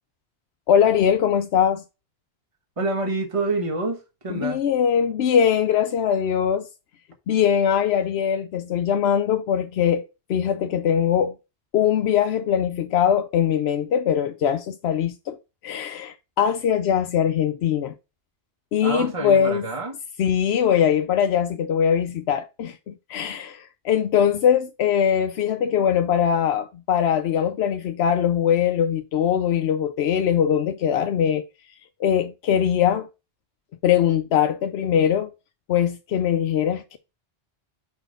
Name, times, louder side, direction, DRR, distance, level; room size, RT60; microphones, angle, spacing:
voice 1, 0.7-1.8 4.3-6.7 7.3-10.0 10.3-11.3 11.7-15.4 15.6-17.9 18.7-19.6 20.2-31.4 32.0-33.1 33.8-35.3 35.7-37.0, left 8 dB, 80° left, 0.9 m, -21 dB
voice 2, 2.8-4.0 4.2-4.6 18.8-20.0, right 2 dB, 30° right, 1.4 m, -27 dB
5.7 x 4.1 x 5.2 m
omnidirectional pair, 1.1 m